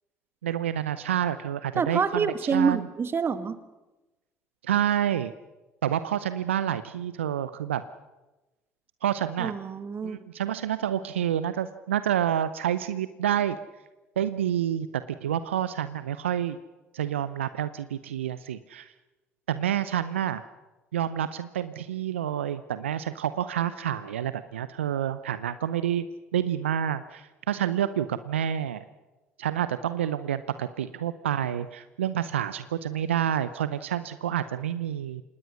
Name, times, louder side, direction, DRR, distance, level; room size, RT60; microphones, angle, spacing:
voice 1, 0.4-2.9 4.6-5.3 5.8-7.8 9.0-9.5 10.0-13.6 14.2-14.9 15.2-16.6 16.9-18.9 19.5-20.4 20.9-26.1 26.3-28.8 29.4-35.2, right 10 dB, 85° right, 14 dB, 0.6 m, -28 dB
voice 2, 1.8-3.6 9.4-10.2, right 5 dB, 35° right, 13 dB, 1.6 m, -27 dB
26.5 x 19.5 x 6.3 m, 1.1 s
hypercardioid pair, 55°, 6 cm